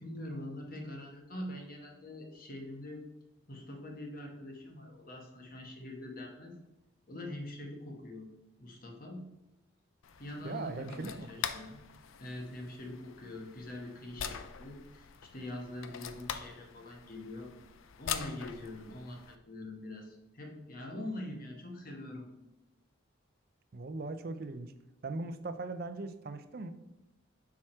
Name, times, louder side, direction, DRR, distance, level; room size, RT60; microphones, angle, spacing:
voice 1, 0.0-3.0 3.5-6.5 7.1-8.3 8.6-9.2 10.2-11.8 12.2-17.5 18.0-22.5, left 1 dB, 45° left, 2 dB, 1.2 m, -44 dB
sound 1, 10.0-19.4, left 8 dB, 75° left, 0.5 m, -43 dB
voice 2, 10.4-11.5 23.7-24.7 25.0-26.7, right 3 dB, 45° right, 10 dB, 0.5 m, -39 dB
5.9 x 4.8 x 4.4 m, 0.95 s
head